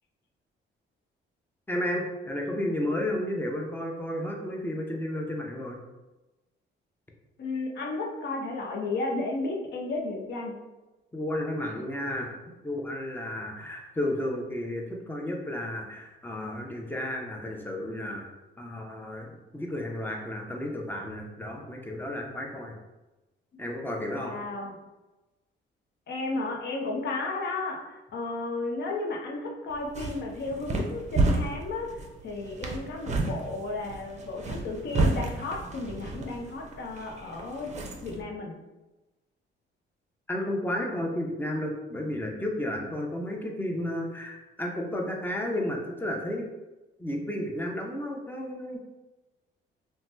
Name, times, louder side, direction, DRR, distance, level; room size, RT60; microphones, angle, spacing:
voice 1, 1.7-5.8 11.1-18.3 18.6-22.8 23.6-24.4 40.3-46.5 47.0-48.8, left 1 dB, 10° left, 0 dB, 0.6 m, -32 dB
voice 2, 7.4-10.5 24.1-24.8 26.1-31.9 32.2-37.7 38.0-38.6, left 2 dB, 60° left, 0 dB, 0.7 m, -33 dB
sound 1, 29.7-38.2, right 2 dB, 35° right, 0.5 m, -31 dB
2.8 x 2.2 x 3.3 m, 1.1 s
cardioid pair, 90°, 20 cm